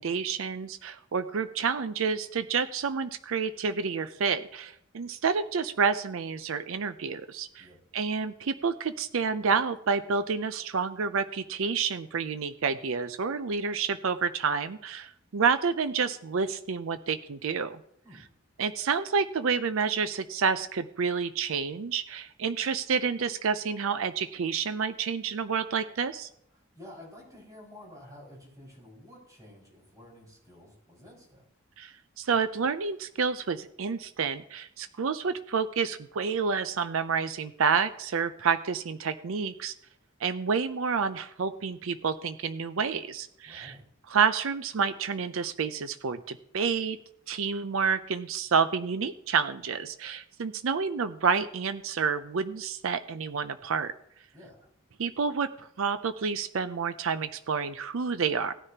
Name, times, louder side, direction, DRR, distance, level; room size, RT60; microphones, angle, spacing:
voice 1, 0.0-7.7 7.9-17.8 18.6-26.3 31.8-39.7 40.2-43.7 44.1-47.0 47.3-53.9 55.0-58.5, right 5 dB, 75° right, 12 dB, 0.5 m, -29 dB
voice 2, 26.5-31.4 43.5-43.9 54.3-54.7, left 1 dB, 15° right, -3 dB, 5.0 m, -50 dB
17.5 x 9.8 x 2.9 m, 0.73 s
head